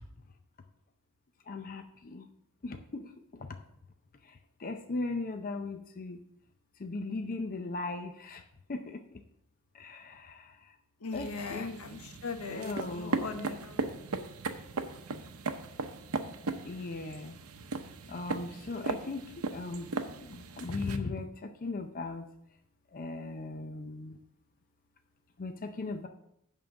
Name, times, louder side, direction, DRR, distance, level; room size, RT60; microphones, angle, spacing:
voice 1, 1.5-2.3 2.6-3.1 3.4-3.5 4.6-6.2 6.8-8.4 8.7-9.2 9.7-10.5 11.1-11.8 12.5-13.2 16.6-17.4 18.1-19.9 20.2-22.3 22.9-24.2 25.4-26.1, left 3 dB, 40° left, 6 dB, 0.6 m, -38 dB
voice 2, 11.0-13.9, left 4 dB, 80° left, 6 dB, 1.1 m, -39 dB
sound 1, 11.1-21.0, right 3 dB, 75° right, 0.8 m, -38 dB
11.0 x 3.8 x 7.0 m, 0.76 s
head